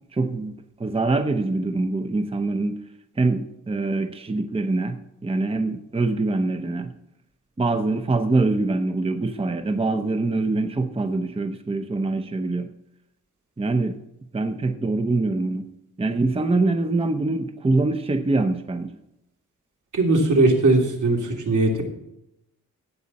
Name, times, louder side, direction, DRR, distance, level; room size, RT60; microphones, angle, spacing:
voice 1, 0.1-0.5 0.8-2.8 3.2-5.0 5.2-6.9 7.6-12.7 13.6-14.0 14.3-15.7 16.0-19.0, right 3 dB, 20° right, 7 dB, 0.8 m, -24 dB
voice 2, 19.9-21.8, right 2 dB, 70° right, 1 dB, 3.1 m, -19 dB
17.0 x 8.0 x 4.2 m, 0.84 s
wide cardioid pair, 120°, 31 cm